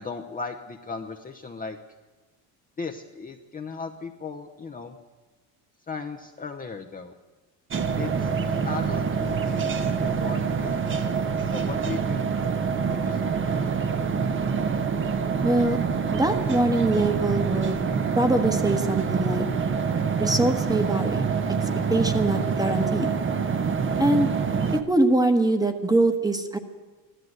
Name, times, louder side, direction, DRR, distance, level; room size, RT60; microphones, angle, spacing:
voice 1, 0.0-1.8 2.8-5.0 5.9-7.1 8.0-10.9 11.5-12.3 12.9-13.3, left 4 dB, 20° left, 2 dB, 0.9 m, -37 dB
sound 1, 7.7-24.8, right 6 dB, 25° right, 1.0 m, -26 dB
voice 2, 15.4-15.8 16.1-17.8 18.2-19.5 20.2-21.2 21.9-23.1 24.0-24.3 24.9-26.6, right 2 dB, 10° right, 8 dB, 1.3 m, -23 dB
15.0 x 12.0 x 8.0 m, 1.3 s
cardioid pair, 125°, 44 cm